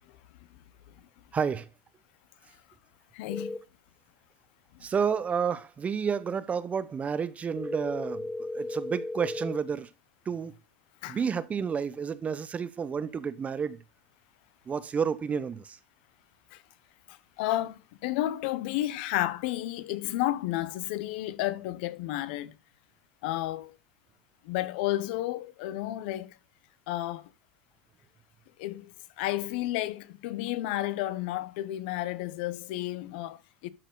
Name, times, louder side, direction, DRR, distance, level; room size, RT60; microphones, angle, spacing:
voice 1, 1.3-1.7 4.8-8.3 8.5-9.9 10.3-10.5 11.1-13.8 14.7-15.8, right 6 dB, 25° right, 0.8 m, -30 dB
voice 2, 3.1-3.6 4.7-4.9 11.0-11.2 16.5-16.6 17.1-22.5 23.2-23.8 24.4-26.4 26.9-27.3 28.6-33.7, left 15 dB, 70° left, 0.8 m, -32 dB
sound 1, 3.3-3.6 7.6-9.6, left 2 dB, 15° left, 2.0 m, -35 dB
12.0 x 4.6 x 3.9 m
supercardioid pair, 115°, 6 cm